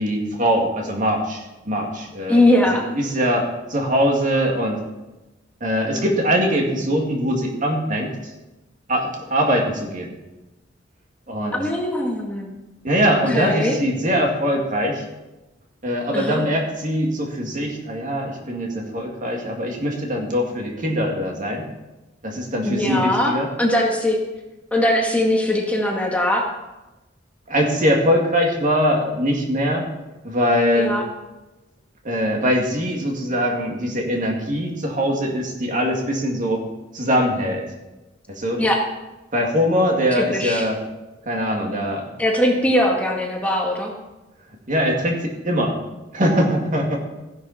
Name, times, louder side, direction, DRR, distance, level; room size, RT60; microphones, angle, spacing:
voice 1, 0.0-2.4 3.0-4.8 5.6-8.3 8.9-10.1 11.3-11.6 12.8-15.0 15.8-21.6 22.2-23.5 27.5-29.8 30.2-30.9 32.0-36.7 36.9-37.6 38.3-38.6 39.3-40.8 41.3-42.1 44.7-45.8 46.1-47.0, equal, 45° right, 1 dB, 2.4 m, -22 dB
voice 2, 2.3-2.9 11.5-12.5 13.3-13.8 16.1-16.4 22.6-24.2 24.7-26.4 30.8-31.0 38.6-38.8 40.2-40.7 42.2-43.9, left 1 dB, 10° left, -1 dB, 1.8 m, -20 dB
15.5 x 11.0 x 4.3 m, 1.0 s
head